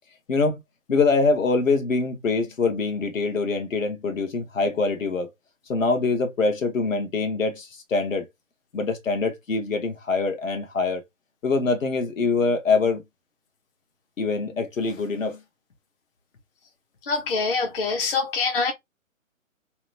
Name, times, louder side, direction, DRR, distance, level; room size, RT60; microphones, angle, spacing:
voice 1, 0.3-0.6 0.9-5.3 5.7-8.3 8.7-11.0 11.4-13.0 14.2-15.4, left 4 dB, 75° left, 1.0 m, -24 dB
voice 2, 17.0-18.7, left 4 dB, 45° left, 0.7 m, -25 dB
2.9 x 2.2 x 2.3 m
hypercardioid pair, 150°, 40 cm